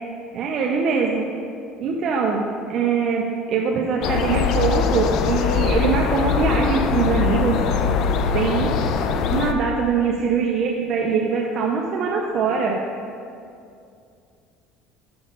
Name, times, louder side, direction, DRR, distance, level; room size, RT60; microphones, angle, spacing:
voice 1, 0.3-1.2 1.8-7.6 8.3-8.8 9.3-12.8, right 5 dB, 40° right, 0 dB, 0.5 m, -22 dB
sound 1, 4.0-9.5, left 6 dB, 50° left, 0.4 m, -22 dB
6.9 x 5.3 x 5.4 m, 2.4 s
cardioid pair, 170°, 0 cm